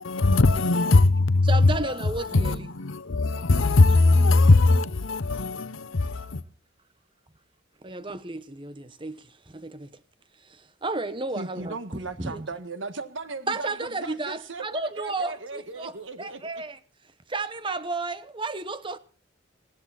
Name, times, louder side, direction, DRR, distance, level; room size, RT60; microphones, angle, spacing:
voice 1, 0.0-6.4, left 3 dB, 90° left, 0.9 m, -20 dB
voice 2, 1.4-2.7 7.8-10.0 10.4-11.8 12.2-12.4 13.5-16.8 17.3-19.0, right 3 dB, 25° right, 1.0 m, -33 dB
voice 3, 11.3-16.6, right 3 dB, 75° right, 1.7 m, -37 dB
19.5 x 16.5 x 4.2 m
head